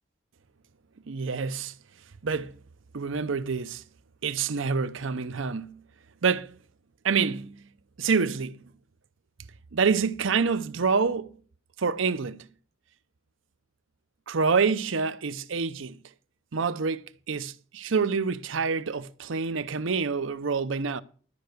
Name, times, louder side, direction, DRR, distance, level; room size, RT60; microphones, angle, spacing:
voice 1, 1.1-1.7 2.2-2.5 2.9-3.8 4.2-5.8 6.2-6.5 7.0-7.6 8.0-8.6 9.7-11.4 11.8-12.5 14.3-16.0 16.5-21.0, right 5 dB, 70° right, 0.6 m, -27 dB
12.5 x 5.6 x 6.5 m
head